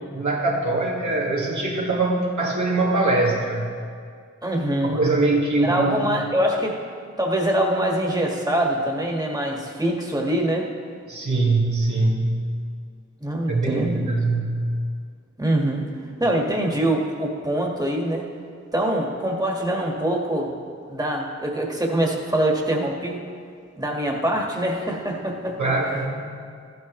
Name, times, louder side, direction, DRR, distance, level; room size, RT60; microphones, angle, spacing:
voice 1, 0.1-3.6 4.8-6.1 11.1-12.5 13.5-14.6 25.6-26.3, right 2 dB, 80° right, -4 dB, 2.0 m, -22 dB
voice 2, 4.4-5.0 5.6-6.8 7.2-10.7 13.2-14.0 15.4-15.8 16.2-18.3 18.7-20.5 20.9-23.2 23.8-25.7, right 1 dB, 15° right, -1 dB, 1.7 m, -24 dB
14.0 x 11.5 x 3.2 m, 2.2 s
wide cardioid pair, 50°, 29 cm